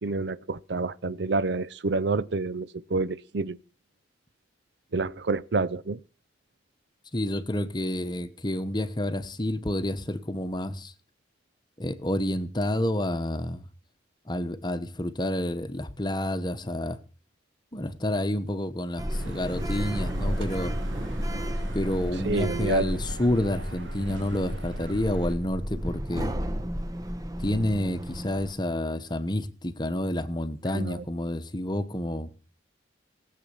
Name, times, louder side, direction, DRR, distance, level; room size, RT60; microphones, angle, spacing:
voice 1, 0.0-3.6 4.9-6.0 22.2-23.0 30.7-31.0, right 3 dB, 65° right, 0.6 m, -28 dB
voice 2, 7.1-10.9 11.8-13.6 14.3-17.0 17.7-20.8 21.7-26.3 27.4-32.3, left 1 dB, 25° left, 1.0 m, -29 dB
Sliding door, 19.0-28.5, equal, 20° right, 1.0 m, -32 dB
sound 1, 19.1-25.4, right 1 dB, 85° right, 2.9 m, -43 dB
19.0 x 7.6 x 6.8 m
head